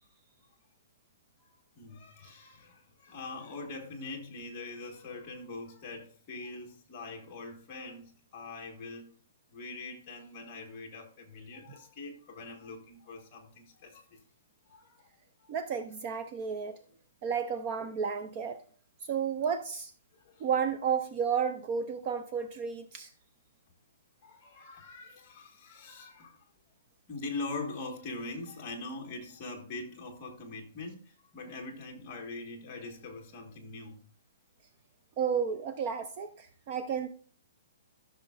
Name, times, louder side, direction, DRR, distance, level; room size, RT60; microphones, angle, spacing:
voice 1, 1.7-9.1 9.5-14.2 14.7-15.0 15.4-15.5 20.1-20.5 24.2-26.4 27.1-34.0, left 3 dB, 20° left, 1.4 m, -43 dB
voice 2, 15.5-16.8 17.2-18.6 19.1-19.9 20.4-23.1 35.2-37.1, right 7 dB, 25° right, 0.4 m, -32 dB
14.0 x 6.2 x 2.4 m
hypercardioid pair, 180°, 0 cm